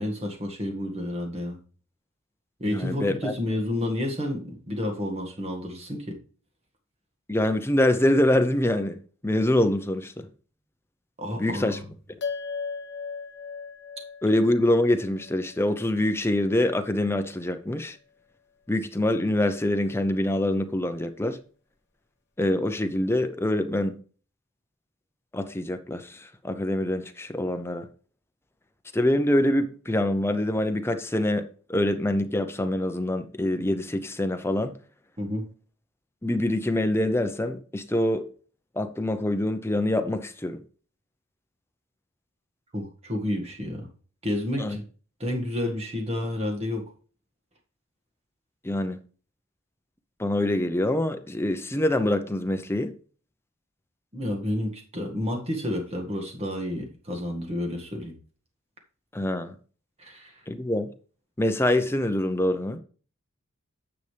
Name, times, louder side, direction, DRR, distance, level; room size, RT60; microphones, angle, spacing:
voice 1, 0.0-1.6 2.6-6.2 11.2-11.9 35.2-35.5 42.7-43.9 44.2-44.8 45.2-46.8 54.1-58.2 60.0-60.4, left 1 dB, 30° right, 1.8 m, -30 dB
voice 2, 2.7-3.3 7.3-9.0 9.2-10.1 11.4-11.8 14.2-18.0 18.7-21.4 22.4-23.9 25.3-27.9 28.9-31.4 31.7-34.7 36.2-38.2 38.8-40.6 44.6-44.8 48.6-49.0 50.2-52.9 59.1-59.5 60.5-60.9 61.4-62.8, left 1 dB, 10° left, 0.6 m, -25 dB
sound 1, 12.2-16.9, left 5 dB, 50° left, 1.2 m, -38 dB
9.6 x 6.9 x 3.3 m
head